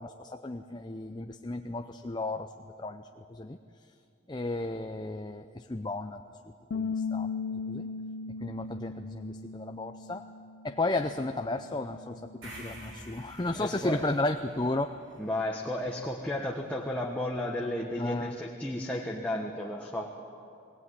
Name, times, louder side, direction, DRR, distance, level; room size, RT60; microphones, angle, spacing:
voice 1, 0.0-2.5 2.8-3.6 4.3-6.2 6.7-7.3 7.7-7.9 8.4-10.3 10.6-15.0 18.0-18.3, left 2 dB, 20° left, 7 dB, 0.6 m, -33 dB
Bass guitar, 6.7-12.9, left 5 dB, 80° left, 0.6 m, -38 dB
sound 1, 12.4-16.6, right 1 dB, 70° right, 6.4 m, -49 dB
voice 2, 13.6-14.1 15.2-20.1, left 1 dB, 5° left, -1 dB, 1.3 m, -33 dB
22.5 x 17.5 x 9.6 m, 2.6 s
head